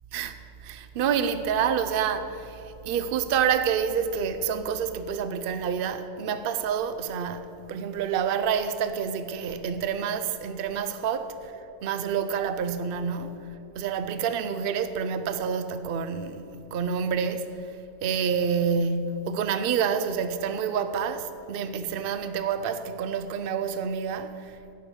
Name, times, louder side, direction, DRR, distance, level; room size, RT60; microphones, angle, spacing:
voice 1, 0.1-11.5 11.8-13.5 13.8-17.5 18.0-24.6, right 7 dB, 60° right, 0.8 m, -28 dB
12.0 x 9.0 x 5.4 m
omnidirectional pair, 1.1 m